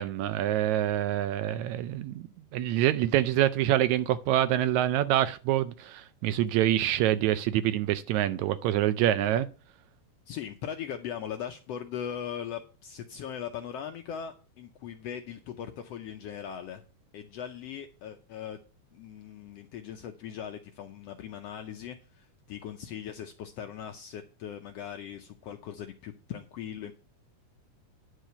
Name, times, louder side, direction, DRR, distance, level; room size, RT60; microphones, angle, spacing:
voice 1, 0.0-2.3 2.5-9.5, right 12 dB, 80° right, 1.8 m, -26 dB
voice 2, 10.3-16.8 17.1-18.6 18.9-26.9, left 9 dB, 75° left, 1.5 m, -39 dB
10.0 x 4.8 x 6.7 m
omnidirectional pair, 3.5 m